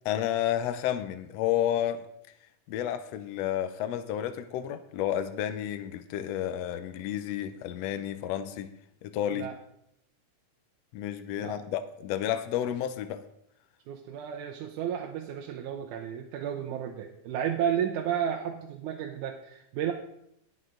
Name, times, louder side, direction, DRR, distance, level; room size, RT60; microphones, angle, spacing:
voice 1, 0.0-2.0 2.7-8.7 9.0-9.5 10.9-13.2, left 11 dB, 80° left, 10 dB, 1.5 m, -31 dB
voice 2, 13.9-19.9, right 9 dB, 75° right, 2 dB, 2.2 m, -32 dB
18.5 x 6.6 x 3.8 m, 0.75 s
omnidirectional pair, 3.7 m